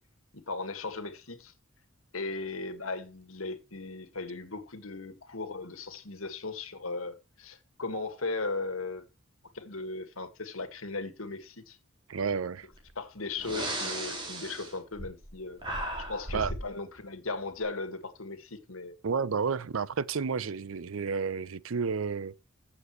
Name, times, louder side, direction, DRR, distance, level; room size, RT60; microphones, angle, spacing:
voice 1, 0.3-1.5 2.1-9.1 9.5-11.8 13.0-15.6 16.0-19.0, left 3 dB, 85° left, 1.9 m, -37 dB
voice 2, 12.1-12.7 16.3-16.5 19.0-22.3, right 5 dB, 80° right, 0.6 m, -31 dB
Breathing, 12.7-12.9 13.4-15.3 15.6-16.7, right 1 dB, 25° right, 4.0 m, -35 dB
15.0 x 7.4 x 3.1 m
head